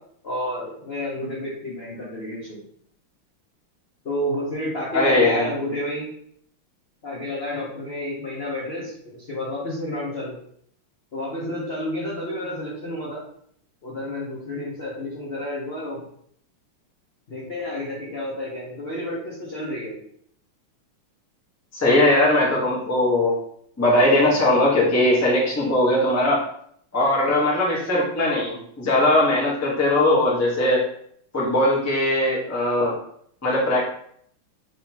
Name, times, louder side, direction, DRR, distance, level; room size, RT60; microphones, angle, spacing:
voice 1, 0.2-2.6 4.0-6.1 7.0-10.4 11.1-13.2 13.8-16.0 17.3-20.0, left 1 dB, 60° left, -6 dB, 0.6 m, -30 dB
voice 2, 4.9-5.5 21.7-23.3 23.8-26.4 26.9-30.8 31.3-32.9 33.4-33.8, left 1 dB, 20° left, -5 dB, 0.4 m, -20 dB
3.7 x 3.6 x 2.8 m, 0.66 s
omnidirectional pair, 2.4 m